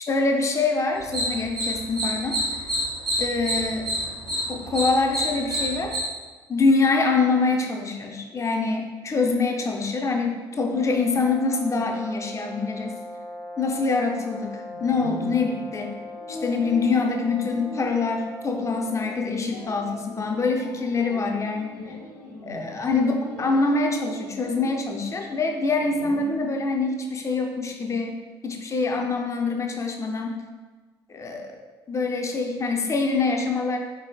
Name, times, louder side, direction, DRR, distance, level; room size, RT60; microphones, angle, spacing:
voice 1, 0.0-2.7 3.2-3.9 4.5-6.0 6.5-12.9 13.6-15.9 16.3-22.0 22.4-28.2 28.4-30.4 31.1-31.5 31.9-33.8, left 3 dB, 25° left, 3 dB, 0.5 m, -25 dB
sound 1, 1.0-6.0, equal, 80° right, 0.9 m, -28 dB
sound 2, 10.5-19.4, equal, 85° left, 0.9 m, -39 dB
sound 3, 14.7-26.6, equal, 65° left, 1.0 m, -41 dB
4.2 x 4.1 x 2.3 m, 1.3 s
figure-of-eight pair, 55°, 12 cm